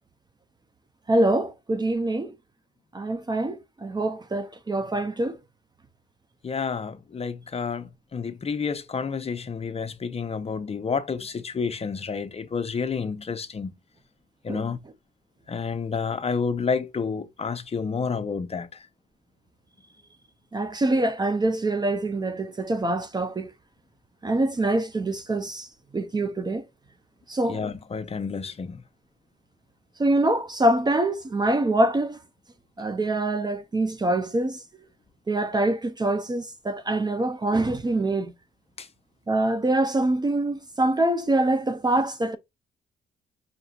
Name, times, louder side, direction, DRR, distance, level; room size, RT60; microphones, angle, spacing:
voice 1, 1.1-2.3 2.9-5.4 14.5-14.6 20.5-23.5 24.2-25.7 25.9-26.6 27.3-27.6 30.0-32.2 32.8-34.6 35.3-38.3 39.3-42.4, right 2 dB, 20° right, 0.5 m, -24 dB
voice 2, 6.4-13.7 14.4-14.8 15.5-18.8 27.5-28.8 38.8-38.9, left 5 dB, 30° left, 0.6 m, -30 dB
5.8 x 2.7 x 2.3 m
cardioid pair, 90°, 20 cm